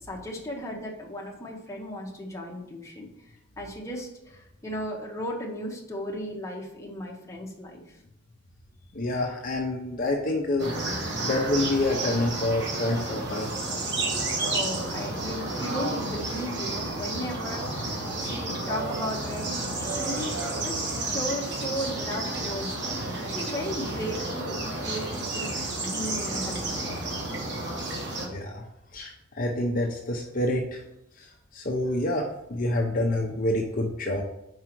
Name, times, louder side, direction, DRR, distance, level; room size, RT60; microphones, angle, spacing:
voice 1, 0.1-3.1 3.6-7.8 14.4-25.5 25.8-27.0, equal, 15° left, -1 dB, 1.1 m, -36 dB
voice 2, 8.9-13.5 28.2-28.6 28.9-30.8 31.2-34.2, left 1 dB, 45° left, 1 dB, 0.7 m, -28 dB
sound 1, 10.6-28.3, right 2 dB, 60° right, 1.5 m, -31 dB
4.9 x 4.7 x 6.0 m, 0.87 s
head